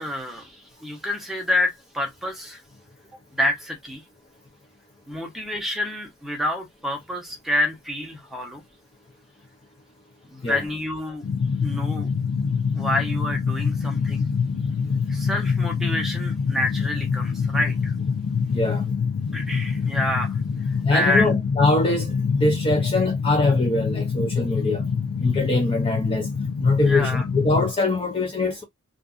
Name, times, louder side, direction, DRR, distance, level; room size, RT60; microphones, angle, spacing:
voice 1, 0.0-2.6 3.4-4.0 5.1-8.6 10.3-11.3 11.6-12.1 12.7-14.3 15.1-17.9 19.3-20.3 20.9-21.3 26.8-27.3, left 1 dB, ahead, 0.8 m, -28 dB
sound 1, 11.2-27.7, left 6 dB, 85° left, 0.4 m, -25 dB
voice 2, 18.5-18.9 20.9-24.9 25.2-26.3 26.6-28.6, left 2 dB, 25° left, 0.5 m, -23 dB
2.5 x 2.4 x 2.3 m
head